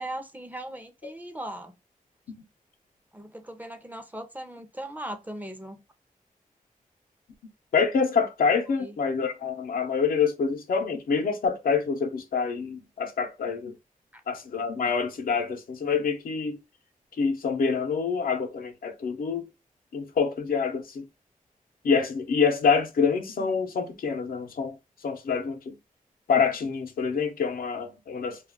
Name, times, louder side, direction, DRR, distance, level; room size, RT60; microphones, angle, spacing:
voice 1, 0.0-1.7 3.1-5.8 8.8-8.9 14.1-14.2, right 1 dB, 10° right, 0.6 m, -38 dB
voice 2, 7.7-13.7 14.3-16.6 17.2-19.5 19.9-21.0 21.8-24.8 25.0-25.7 26.3-28.4, left 5 dB, 90° left, 0.6 m, -26 dB
2.3 x 2.2 x 3.4 m
wide cardioid pair, 90°, 15 cm